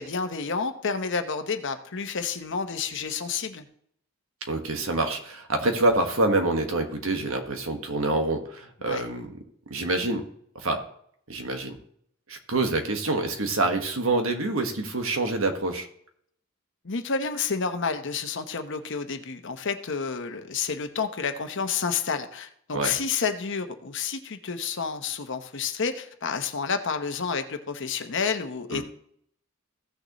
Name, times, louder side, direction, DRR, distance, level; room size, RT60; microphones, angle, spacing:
voice 1, 0.0-3.6 8.8-9.0 16.8-28.8, left 5 dB, 65° left, 7 dB, 1.0 m, -30 dB
voice 2, 4.5-9.3 9.7-10.3 10.5-10.8 11.3-11.8 12.3-15.9 22.7-22.9 28.7-28.8, right 2 dB, 75° right, 5 dB, 1.5 m, -26 dB
15.5 x 6.6 x 3.1 m, 0.67 s
head